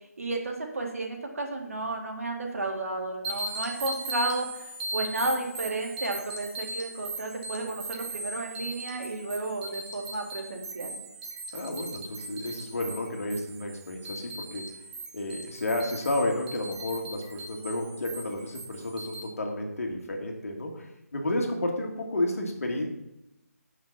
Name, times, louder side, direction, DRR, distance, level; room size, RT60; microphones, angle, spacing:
voice 1, 0.2-11.0, right 2 dB, 60° right, 2 dB, 2.1 m, -33 dB
sound 1, 3.2-19.2, right 2 dB, 10° right, 0.9 m, -39 dB
voice 2, 11.5-14.7 15.1-22.9, left 1 dB, 60° left, 1 dB, 1.9 m, -31 dB
8.1 x 6.0 x 5.9 m, 0.90 s
figure-of-eight pair, 155°, 9 cm